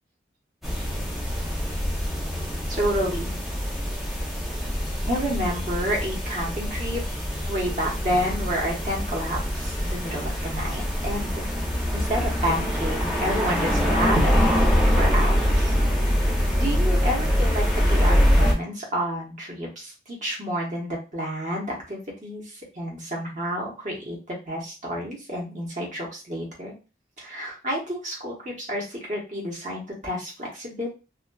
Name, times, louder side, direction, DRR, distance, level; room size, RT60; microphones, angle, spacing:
sound 1, 0.6-18.5, equal, ahead, 0.7 m, -24 dB
voice 1, 2.7-3.4 5.0-7.0 7.4-11.5 11.9-14.7 15.0-15.7 16.0-16.2 16.5-22.4 22.7-26.7 27.2-30.9, equal, 40° right, -2 dB, 1.1 m, -29 dB
2.5 x 2.5 x 2.3 m, 0.30 s
head